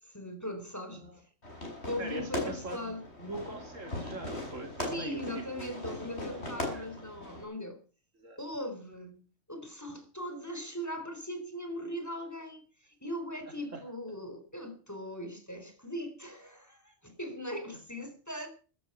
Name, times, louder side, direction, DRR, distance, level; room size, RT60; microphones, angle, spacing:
voice 1, 0.0-1.2 1.9-3.0 4.9-7.8 8.4-9.2 9.5-18.5, left 1 dB, 15° left, 6 dB, 4.3 m, -40 dB
Fireworks, 1.4-7.4, left 1 dB, 55° left, 6.1 m, -39 dB
voice 2, 2.0-5.9 6.3-7.0 8.2-8.4 13.7-13.8, right 2 dB, 80° right, 5 dB, 3.5 m, -42 dB
15.5 x 13.0 x 5.8 m, 0.38 s
omnidirectional pair, 1.3 m